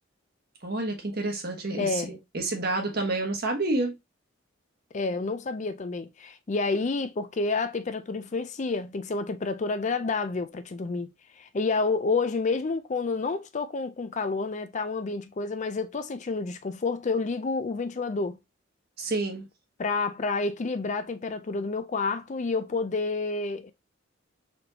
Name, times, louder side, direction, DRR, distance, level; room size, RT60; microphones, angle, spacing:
voice 1, 0.6-4.0 19.0-19.5, right 2 dB, 50° right, 1.3 m, -29 dB
voice 2, 1.7-2.2 4.9-11.1 11.4-18.4 19.8-23.7, left 3 dB, 35° left, 0.4 m, -29 dB
4.3 x 3.4 x 2.8 m
head